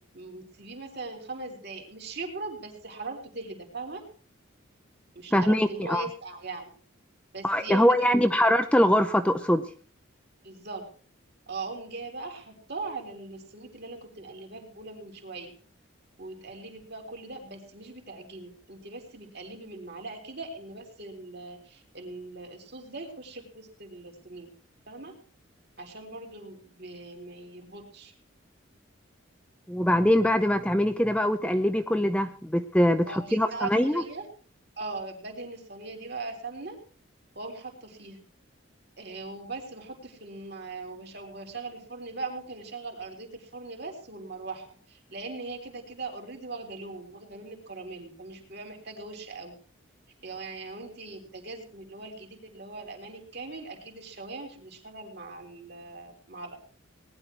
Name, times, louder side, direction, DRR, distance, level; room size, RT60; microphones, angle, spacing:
voice 1, 0.1-4.0 5.2-6.7 7.3-8.5 10.4-10.9 11.5-15.5 16.2-24.5 24.9-25.2 25.8-28.1 33.1-34.3 34.8-36.8 37.4-38.2 39.0-49.5 50.2-56.6, right 3 dB, 50° right, 2 dB, 3.6 m, -40 dB
voice 2, 5.3-6.1 7.4-9.7 29.7-34.0, equal, 5° left, 8 dB, 0.6 m, -23 dB
19.5 x 10.5 x 4.6 m, 0.43 s
head